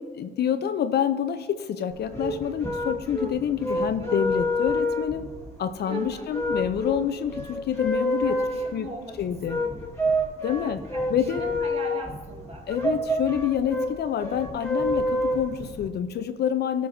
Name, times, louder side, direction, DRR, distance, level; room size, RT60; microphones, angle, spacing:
voice 1, 0.0-5.3 5.6-8.4 8.7-8.9 9.2-9.6 10.4-10.8 11.1-11.4 12.7-16.9, left 9 dB, 55° left, 11 dB, 0.4 m, -27 dB
sound 1, 1.9-15.9, equal, 15° left, 1.5 m, -28 dB
voice 2, 3.7-4.1 5.9-6.3 8.2-9.7 10.5-12.7, right 1 dB, 30° right, -1 dB, 1.9 m, -41 dB
13.5 x 4.6 x 2.6 m, 1.5 s
cardioid pair, 90°, 20 cm